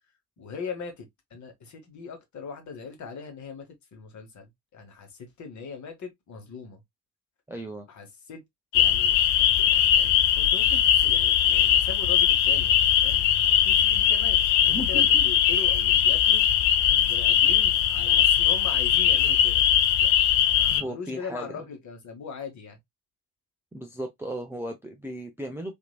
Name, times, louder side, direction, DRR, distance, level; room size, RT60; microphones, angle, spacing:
voice 1, 0.4-6.8 7.9-8.4 8.7-16.4 16.9-19.6 20.0-20.1 20.6-22.8, left 5 dB, 40° left, 1.1 m, -40 dB
voice 2, 7.5-7.9 14.7-15.2 20.7-21.6 23.7-25.8, equal, 5° right, 0.4 m, -35 dB
sound 1, 8.7-20.8, left 10 dB, 60° left, 0.6 m, -21 dB
2.9 x 2.6 x 2.3 m
figure-of-eight pair, 45°, 46 cm